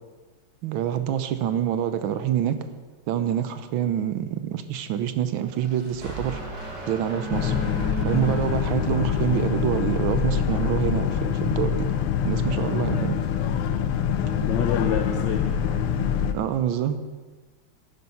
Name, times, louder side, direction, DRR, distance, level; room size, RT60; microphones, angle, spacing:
voice 1, 0.6-2.6 3.1-6.5 6.9-7.5 8.0-11.9 12.2-13.2 16.3-17.0, right 10 dB, 75° right, 11 dB, 1.4 m, -26 dB
sound 1, 5.3-9.9, right 2 dB, 45° right, 3.1 m, -35 dB
Boat Water vehicle, 7.3-16.3, left 8 dB, 85° left, 1.6 m, -25 dB
voice 2, 14.3-15.9, left 7 dB, 65° left, 3 dB, 1.3 m, -29 dB
11.0 x 10.0 x 5.5 m, 1.3 s
omnidirectional pair, 2.4 m